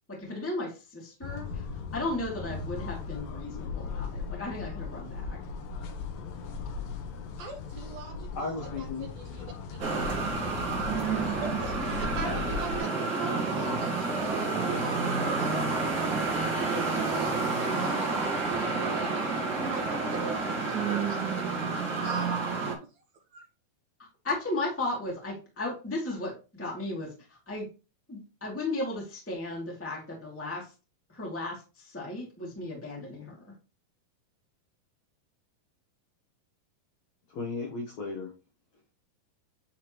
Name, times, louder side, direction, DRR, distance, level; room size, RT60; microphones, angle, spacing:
voice 1, 0.1-5.4 24.0-27.7 28.1-30.7 31.1-33.4, left 2 dB, 5° left, -3 dB, 1.6 m, -35 dB
sound 1, 1.2-12.8, left 5 dB, 80° left, 2.7 m, -38 dB
voice 2, 7.4-9.5 10.3-18.1 18.8-22.7 23.3-23.4, right 3 dB, 75° right, 2 dB, 1.7 m, -43 dB
voice 3, 8.4-9.1 37.3-38.3, left 3 dB, 60° left, -1 dB, 2.0 m, -35 dB
sound 2, 9.8-22.7, right 4 dB, 55° right, 1.4 m, -29 dB
9.5 x 3.6 x 3.0 m, 0.31 s
omnidirectional pair, 4.3 m